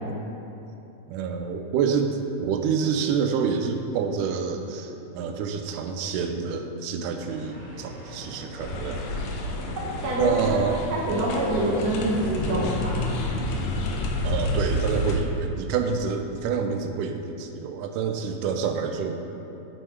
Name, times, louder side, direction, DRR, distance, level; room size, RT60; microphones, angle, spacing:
voice 1, 1.1-9.3 10.2-10.9 14.2-19.2, right 6 dB, 90° right, 5 dB, 2.1 m, -28 dB
sound 1, 7.1-12.8, equal, 40° left, 1.5 m, -42 dB
sound 2, 8.6-15.1, left 1 dB, 75° left, 1.9 m, -29 dB
voice 2, 10.0-10.6 10.9-12.9, right 1 dB, 65° right, -5 dB, 0.9 m, -25 dB
6.3 x 5.4 x 4.5 m, 2.9 s
omnidirectional pair, 3.6 m